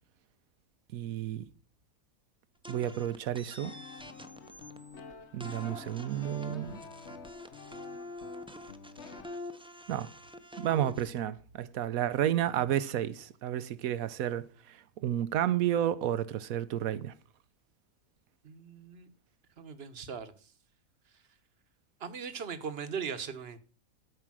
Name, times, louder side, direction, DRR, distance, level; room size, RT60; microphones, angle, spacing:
voice 1, 0.9-1.5 2.7-3.7 5.3-6.8 9.9-10.1 10.6-17.1, right 11 dB, 90° right, 1.1 m, -31 dB
sound 1, 2.6-5.0 5.4-11.1, left 1 dB, 5° right, 0.5 m, -46 dB
sound 2, 3.6-9.4, left 5 dB, 55° left, 1.5 m, -48 dB
voice 2, 18.4-19.1 19.6-20.3 22.0-23.6, right 6 dB, 50° right, 1.1 m, -39 dB
13.0 x 4.9 x 6.2 m
omnidirectional pair, 1.4 m